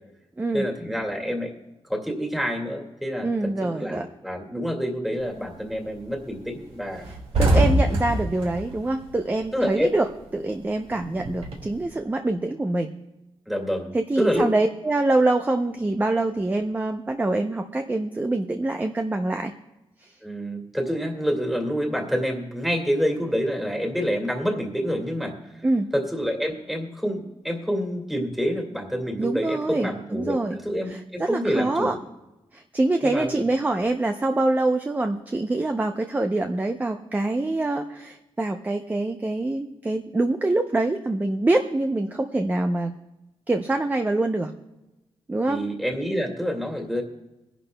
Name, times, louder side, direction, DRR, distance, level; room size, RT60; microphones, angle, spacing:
voice 1, 0.5-1.5 1.9-7.1 9.5-9.9 13.5-14.5 20.2-25.4 25.9-30.4 30.6-32.0 33.0-33.4 45.5-47.0, equal, ahead, 1 dB, 2.0 m, -27 dB
voice 2, 3.2-4.1 7.4-10.1 10.3-12.9 13.9-19.5 25.6-25.9 29.2-30.6 30.9-31.9 32.5-42.9 43.5-44.5 45.3-45.6, right 2 dB, 15° right, 5 dB, 0.6 m, -25 dB
sound 1, 5.2-5.6 6.0-6.1 6.4-6.5 6.8-9.8 10.1-11.8, right 1 dB, 75° right, 2.5 m, -24 dB
23.0 x 11.0 x 2.2 m, 1.0 s
wide cardioid pair, 115°, 10 cm